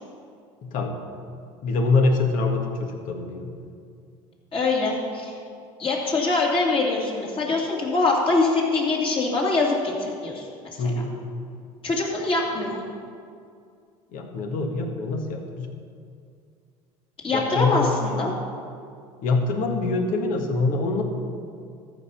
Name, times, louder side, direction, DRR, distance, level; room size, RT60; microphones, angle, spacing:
voice 1, 0.6-0.9 1.6-3.5 10.8-11.1 14.1-15.7 17.3-17.9 19.2-21.0, left 3 dB, 60° left, 3 dB, 1.7 m, -24 dB
voice 2, 4.5-5.3 5.8-10.5 10.8-11.0 11.8-12.8 17.2-18.3, left 3 dB, 35° left, -2 dB, 2.8 m, -23 dB
13.5 x 5.6 x 5.9 m, 2.3 s
hypercardioid pair, 80°, 15 cm